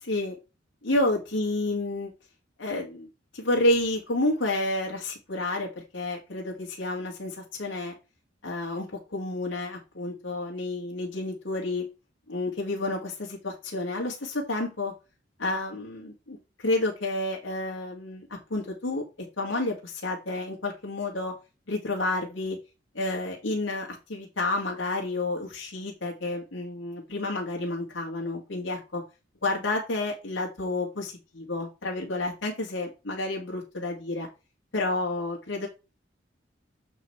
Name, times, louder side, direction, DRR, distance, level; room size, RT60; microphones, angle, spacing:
voice 1, 0.0-0.4 0.8-2.1 2.6-3.1 3.3-7.9 8.4-11.8 12.3-14.9 15.4-19.0 19.4-21.3 21.7-22.6 22.9-29.0 29.4-34.3 34.7-35.7, left 2 dB, 90° left, -1 dB, 2.1 m, -30 dB
8.2 x 4.0 x 4.5 m, 0.28 s
head